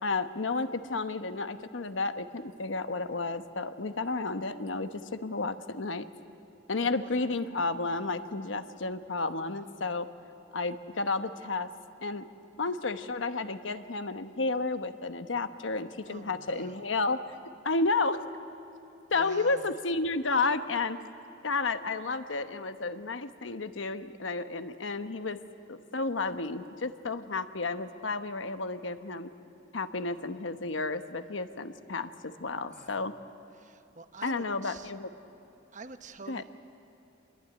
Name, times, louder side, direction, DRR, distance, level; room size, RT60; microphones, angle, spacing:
voice 1, 0.0-6.1 6.7-10.1 10.5-11.7 12.0-12.3 12.6-17.2 17.6-18.2 19.1-21.0 21.4-25.4 25.7-29.3 29.7-33.1 34.2-35.1 36.3-36.4, left 3 dB, 85° left, 10 dB, 1.1 m, -32 dB
voice 2, 6.7-7.4 16.1-16.9 19.1-19.7 32.7-33.2 33.5-34.9 35.7-36.4, right 4 dB, 40° right, 9 dB, 1.1 m, -48 dB
26.0 x 22.0 x 9.5 m, 2.9 s
head